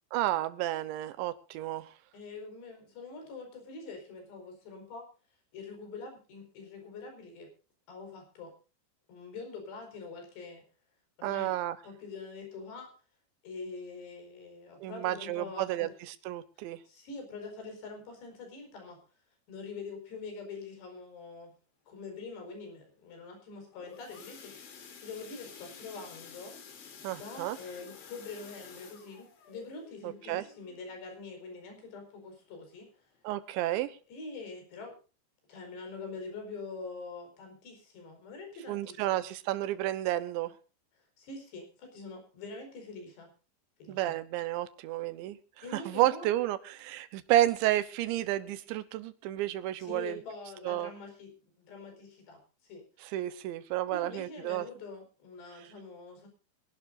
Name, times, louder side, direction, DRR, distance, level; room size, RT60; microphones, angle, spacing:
voice 1, 0.1-1.9 11.2-11.8 14.8-16.8 27.0-27.6 30.0-30.4 33.2-34.0 38.7-40.5 43.9-45.4 45.7-50.2 50.6-50.9 53.1-54.7, right 14 dB, 80° right, 13 dB, 3.2 m, -31 dB
voice 2, 2.1-5.1 5.5-7.5 7.9-8.5 9.1-10.6 11.2-11.5 11.8-12.9 13.4-15.9 16.9-19.0 19.5-21.5 21.9-26.6 27.1-32.9 34.1-35.0 35.5-39.3 41.2-43.3 43.8-44.2 45.6-46.3 49.8-51.3 51.6-52.8 53.9-56.3, left 4 dB, 65° left, 4 dB, 6.9 m, -44 dB
sound 1, 23.5-32.2 32.6-32.9 33.2-33.3 33.7-33.8, left 6 dB, 90° left, 5.3 m, -51 dB
24.5 x 11.5 x 2.6 m, 0.35 s
omnidirectional pair, 5.3 m